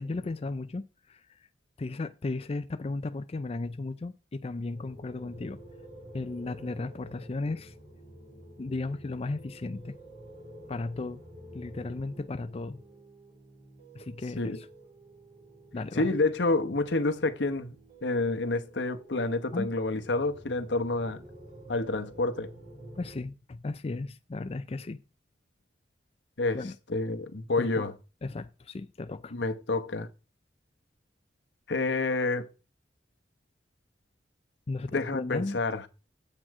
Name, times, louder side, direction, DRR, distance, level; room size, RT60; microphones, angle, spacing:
voice 1, 0.0-1.5 1.8-5.6 6.1-7.7 8.6-9.9 10.7-11.2 11.5-12.8 13.9-14.7 15.7-16.1 19.5-19.7 23.0-25.0 26.5-26.7 27.6-27.9 28.2-29.3 34.7-35.6, left 3 dB, 35° left, 0.4 m, -35 dB
sound 1, 4.7-23.2, right 1 dB, 45° right, 6.0 m, -50 dB
voice 2, 15.9-17.8 18.0-21.2 21.7-22.5 26.4-27.9 29.3-30.1 31.7-32.5 34.8-35.9, left 2 dB, 75° left, 1.1 m, -29 dB
8.7 x 7.6 x 4.8 m
head